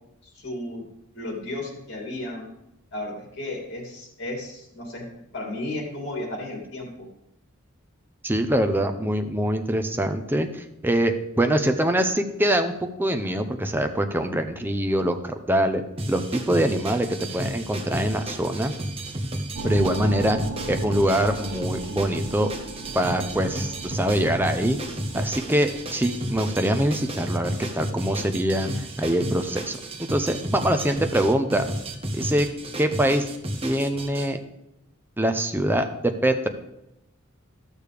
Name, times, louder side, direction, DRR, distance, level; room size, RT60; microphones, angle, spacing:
voice 1, 0.3-0.9 1.1-2.5 2.9-5.0 5.3-7.1, left 1 dB, 55° left, -1 dB, 2.8 m, -34 dB
voice 2, 8.2-12.7 13.0-15.8 16.1-18.7 19.6-20.4 20.7-22.5 22.9-24.8 25.1-29.8 30.1-31.7 32.1-32.5 32.8-33.3 33.6-34.4 35.2-36.5, right 1 dB, 10° right, 6 dB, 0.6 m, -24 dB
sound 1, 16.0-34.3, right 1 dB, 25° right, 1.0 m, -32 dB
sound 2, 19.6-25.8, right 3 dB, 70° right, 0.7 m, -38 dB
14.0 x 6.6 x 3.4 m, 0.86 s
head